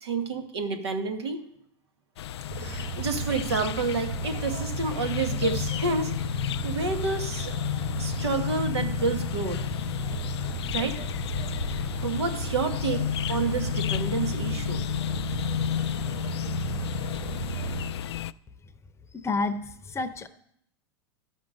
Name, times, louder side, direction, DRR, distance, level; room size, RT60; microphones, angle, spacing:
voice 1, 0.0-1.4 2.6-6.1 6.6-7.6 8.0-9.6 10.7-11.0 12.0-14.8, right 4 dB, 85° right, 7 dB, 1.5 m, -29 dB
sound 1, 2.2-18.3, left 11 dB, 80° left, 0.4 m, -31 dB
sound 2, 2.5-17.9, right 10 dB, 40° right, 3.0 m, -36 dB
voice 2, 19.1-20.3, left 3 dB, 20° left, 11 dB, 0.7 m, -30 dB
12.0 x 5.9 x 6.3 m, 0.71 s
hypercardioid pair, 110°, 13 cm